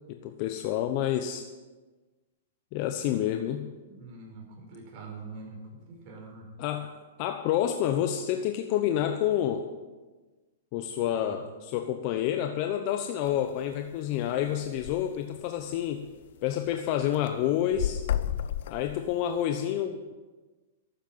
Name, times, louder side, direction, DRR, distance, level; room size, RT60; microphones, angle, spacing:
voice 1, 0.1-1.4 2.7-3.7 6.6-6.9 7.2-9.6 10.7-16.0 16.4-18.0 18.7-20.1, left 11 dB, 45° left, 6 dB, 0.9 m, -29 dB
voice 2, 3.9-5.6 5.9-6.5 11.2-11.3, right 4 dB, 40° right, 0 dB, 4.9 m, -44 dB
sound 1, 13.3-13.5 13.9-14.0 14.3-14.4 14.6-15.0 15.6-15.7 16.1-16.8 17.1-19.4, left 10 dB, 65° left, 0.5 m, -31 dB
12.5 x 9.3 x 7.4 m, 1.3 s
hypercardioid pair, 125°, 0 cm